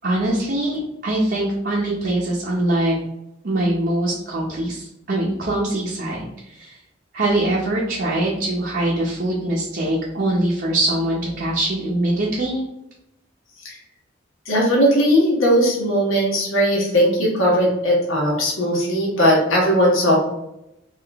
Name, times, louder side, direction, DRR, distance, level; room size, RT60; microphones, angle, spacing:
voice 1, 0.0-2.9 3.4-6.8 7.1-12.6, right 1 dB, 50° right, -5 dB, 0.7 m, -23 dB
voice 2, 14.5-20.1, equal, 90° left, -3 dB, 1.3 m, -18 dB
3.7 x 2.5 x 3.4 m, 0.86 s
head